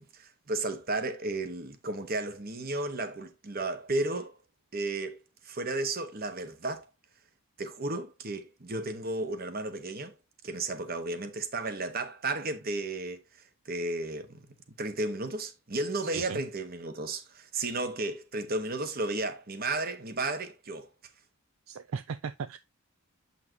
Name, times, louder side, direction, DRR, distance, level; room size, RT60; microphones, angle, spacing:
voice 1, 0.0-4.4 4.7-5.2 5.4-6.9 7.6-10.1 10.4-13.2 13.6-14.3 14.8-20.9, right 2 dB, 45° right, 1.2 m, -33 dB
voice 2, 21.7-22.6, right 6 dB, 65° right, 0.4 m, -36 dB
7.6 x 5.7 x 2.8 m
head